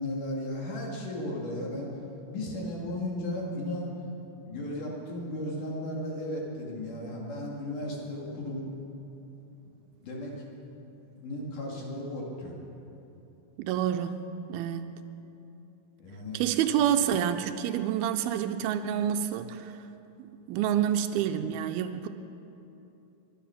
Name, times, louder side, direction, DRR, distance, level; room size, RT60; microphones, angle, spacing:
voice 1, 0.0-1.9 2.3-3.9 4.5-8.7 10.0-10.3 11.2-12.5 16.0-16.4, left 1 dB, 60° left, -2 dB, 3.7 m, -35 dB
voice 2, 13.6-14.2 14.5-14.9 16.3-19.7 20.5-22.1, right 10 dB, 80° right, 8 dB, 2.4 m, -28 dB
23.0 x 10.0 x 5.9 m, 2.9 s
omnidirectional pair, 4.5 m